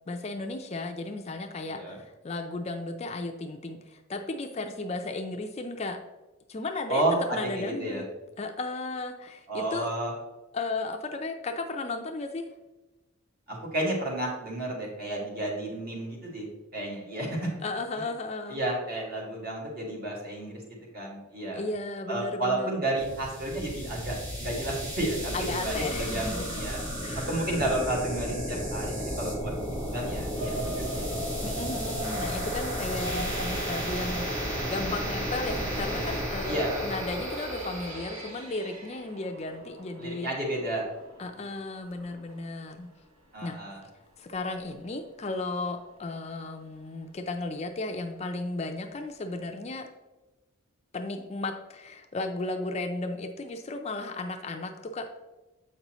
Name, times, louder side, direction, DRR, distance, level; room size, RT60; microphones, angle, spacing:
voice 1, 0.1-6.0 6.5-7.0 7.3-8.1 8.4-9.9 10.5-12.5 17.6-18.6 21.5-22.7 25.3-26.6 27.0-27.3 31.4-40.3 41.2-42.9 43.4-43.6 44.2-49.9 50.9-55.1, left 2 dB, 30° left, 5 dB, 0.4 m, -35 dB
voice 2, 1.7-2.0 6.9-8.0 9.5-10.1 13.5-17.5 18.5-21.6 22.1-26.8 27.3-31.2 36.5-36.8 40.0-40.8 43.3-43.8, right 1 dB, 45° right, -3 dB, 1.8 m, -32 dB
sound 1, 23.0-38.3, equal, 20° right, 1.4 m, -33 dB
sound 2, 30.3-43.0 43.6-43.7 44.2-44.4 44.7-44.8, right 1 dB, 85° right, 1.1 m, -42 dB
7.4 x 5.4 x 3.0 m, 1.1 s
head